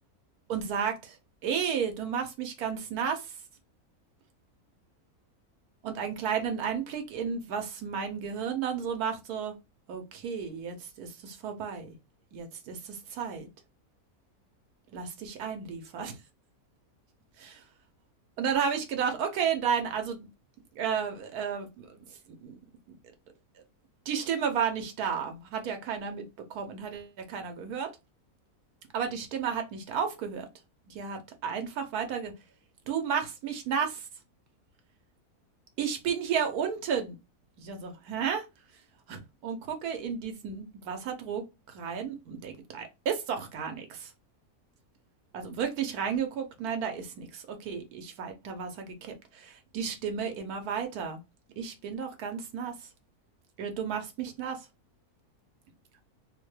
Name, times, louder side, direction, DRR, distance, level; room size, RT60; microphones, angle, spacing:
voice 1, 0.5-1.2 1.4-3.4 5.8-9.5 9.9-12.0 12.3-13.5 14.9-16.2 17.4-17.6 18.4-20.3 20.8-22.6 22.9-23.0 24.1-26.2 26.5-27.9 28.9-30.5 30.9-32.3 32.9-34.1 35.8-37.2 37.6-38.5 39.1-44.1 45.3-51.2 51.6-52.9 53.6-54.7, right 7 dB, 80° right, 1.2 m, -33 dB
3.4 x 2.2 x 3.1 m
omnidirectional pair, 1.6 m